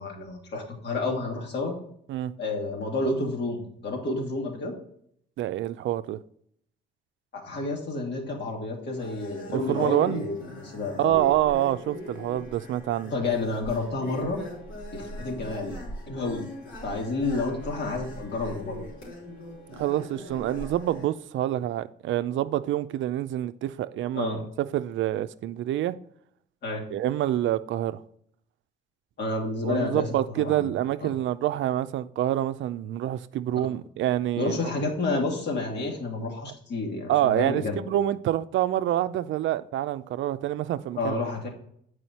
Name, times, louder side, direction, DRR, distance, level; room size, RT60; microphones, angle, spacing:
voice 1, 0.0-1.7 2.4-4.7 7.3-11.2 13.1-14.4 14.9-15.8 16.1-16.5 16.8-18.8 24.1-24.4 26.6-26.8 29.2-30.1 30.3-30.7 31.0-31.1 34.4-37.8 41.0-41.5, left 3 dB, 60° left, 2.4 m, -30 dB
voice 2, 5.4-6.2 9.5-10.2 11.0-13.1 19.8-24.4 24.7-26.0 26.9-28.0 29.6-34.7 37.1-41.2, right 13 dB, 75° right, 0.5 m, -27 dB
sound 1, 8.9-21.1, left 1 dB, 80° left, 2.9 m, -41 dB
7.7 x 4.9 x 4.2 m
cardioid pair, 90°, 20 cm